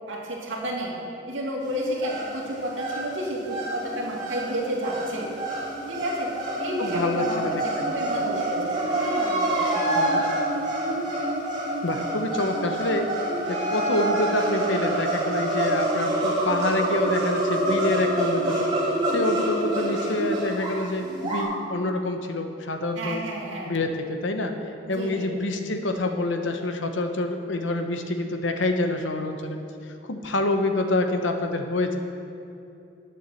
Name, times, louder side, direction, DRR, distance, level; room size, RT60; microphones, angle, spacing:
voice 1, 0.1-0.9 1.3-5.3 5.9-6.3 6.6-10.0 23.0-23.7 24.8-25.3, right 1 dB, 90° right, -3 dB, 2.3 m, -31 dB
sound 1, 1.6-21.4, right 1 dB, 25° right, 2.7 m, -27 dB
voice 2, 6.8-7.6 9.9-10.2 11.8-13.1 13.5-23.2 23.7-24.6 24.9-29.6 30.1-32.0, left 2 dB, 85° left, 6 dB, 0.9 m, -27 dB
9.7 x 7.3 x 7.1 m, 2.7 s
head